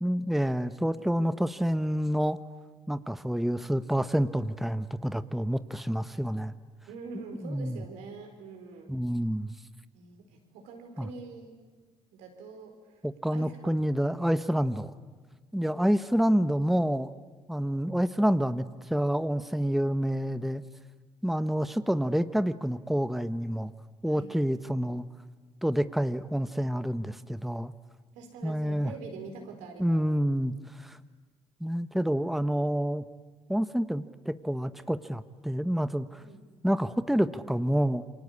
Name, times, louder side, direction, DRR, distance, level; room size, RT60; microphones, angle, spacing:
voice 1, 0.0-2.4 2.9-6.5 7.4-7.8 8.9-9.5 11.0-11.1 13.0-14.9 15.5-17.1 17.5-20.6 21.2-23.7 24.0-25.0 25.6-27.7 28.4-28.9 29.8-31.0 31.6-33.0 33.5-36.2 36.6-38.0, equal, ahead, 12 dB, 1.1 m, -28 dB
voice 2, 6.9-8.9 9.9-11.6 12.1-13.0 13.3-13.9 24.1-24.3 28.1-30.0 36.2-36.5, right 4 dB, 80° right, 4 dB, 4.6 m, -45 dB
28.0 x 24.0 x 8.6 m, 1.4 s
hypercardioid pair, 55°, 12 cm